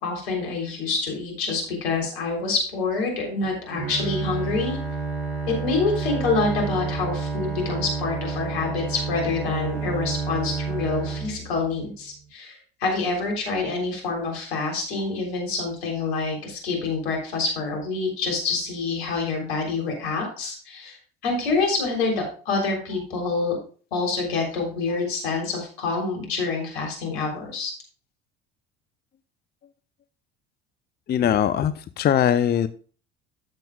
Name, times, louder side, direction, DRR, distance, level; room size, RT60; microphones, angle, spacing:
voice 1, 0.0-4.8 5.5-21.0 21.2-23.6 23.9-27.7, left 4 dB, 80° left, 1 dB, 3.5 m, -27 dB
Bowed string instrument, 3.7-11.9, right 4 dB, 45° right, 5.0 m, -30 dB
voice 2, 31.1-32.7, left 9 dB, 30° left, 14 dB, 0.5 m, -21 dB
12.5 x 7.5 x 2.3 m, 0.40 s
hypercardioid pair, 65°, 31 cm